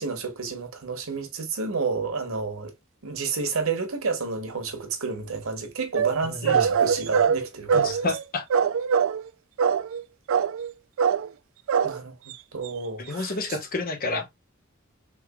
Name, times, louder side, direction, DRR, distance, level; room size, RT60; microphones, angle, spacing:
voice 1, 0.0-2.7 3.0-8.0 11.8-12.2 12.5-13.4, right 4 dB, 90° right, 0.9 m, -30 dB
sound 1, 5.9-8.2 8.5-9.3 9.6-10.0 10.3-10.7 11.0-11.3 11.7-12.0 12.3-12.4 12.6-12.7, right 7 dB, 70° right, 0.3 m, -23 dB
voice 2, 6.2-6.7 7.7-8.5 13.0-14.4, left 3 dB, 45° left, 0.9 m, -30 dB
3.6 x 3.2 x 2.2 m
head